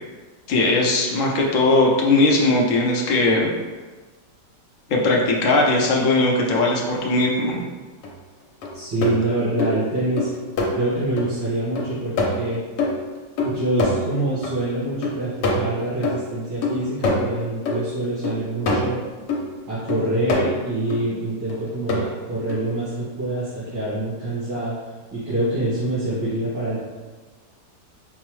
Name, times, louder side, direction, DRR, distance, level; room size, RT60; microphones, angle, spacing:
voice 1, 0.5-3.5 4.9-7.6, left 2 dB, 70° left, -1 dB, 0.7 m, -19 dB
sound 1, 8.0-8.1 8.6-11.3 11.7-14.5 14.8-19.5 19.9-21.0 21.5-22.0 22.5-22.6, left 2 dB, 85° left, 1.3 m, -25 dB
voice 2, 8.7-10.3 10.7-12.6 13.4-19.0 19.7-24.8 25.1-26.8, right 1 dB, 80° right, -14 dB, 2.2 m, -25 dB
5.2 x 2.0 x 3.0 m, 1.3 s
omnidirectional pair, 1.9 m